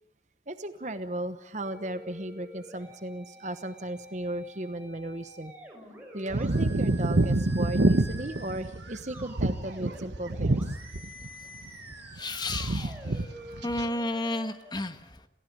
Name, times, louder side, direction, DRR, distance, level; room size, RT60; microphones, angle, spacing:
voice 1, 0.5-5.5 6.1-10.7, right 1 dB, 40° right, 10 dB, 1.1 m, -36 dB
sound 1, 1.6-14.7, right 1 dB, 10° right, 5.2 m, -48 dB
sound 2, 6.3-11.3 11.5-12.2 12.5-13.3 13.5-13.9, right 2 dB, 75° right, 1.1 m, -27 dB
voice 2, 12.1-13.2 13.6-15.2, left 2 dB, 25° left, 9 dB, 1.4 m, -32 dB
28.5 x 15.5 x 8.6 m, 0.89 s
head